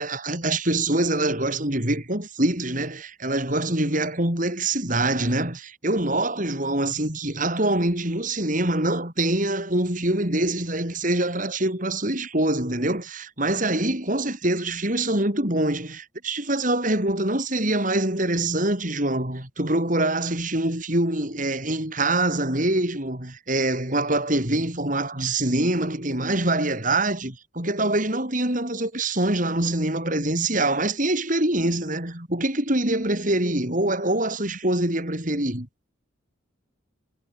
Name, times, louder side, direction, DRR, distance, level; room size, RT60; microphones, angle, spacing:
voice 1, 0.0-35.7, right 1 dB, 40° right, 5.1 m, -24 dB
head